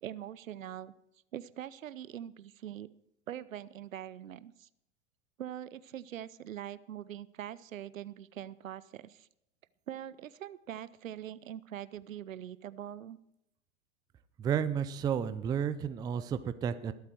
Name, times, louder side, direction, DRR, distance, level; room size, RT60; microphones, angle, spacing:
voice 1, 0.0-0.9 1.3-2.9 3.3-4.7 5.4-9.3 9.9-13.2, right 11 dB, 75° right, 17 dB, 0.8 m, -43 dB
voice 2, 14.4-16.9, right 8 dB, 10° right, 12 dB, 0.4 m, -32 dB
20.5 x 8.2 x 4.6 m, 0.79 s
hypercardioid pair, 105°, 39 cm